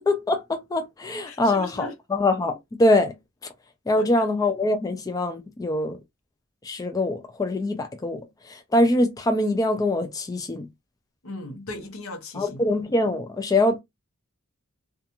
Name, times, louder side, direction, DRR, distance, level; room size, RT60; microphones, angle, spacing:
voice 1, 0.1-3.1 3.9-6.0 6.6-10.7 12.3-13.8, left 1 dB, 15° left, 0.3 m, -23 dB
voice 2, 1.3-1.9 3.9-4.3 11.2-12.6, left 2 dB, 75° left, 0.7 m, -38 dB
2.4 x 2.3 x 2.8 m
head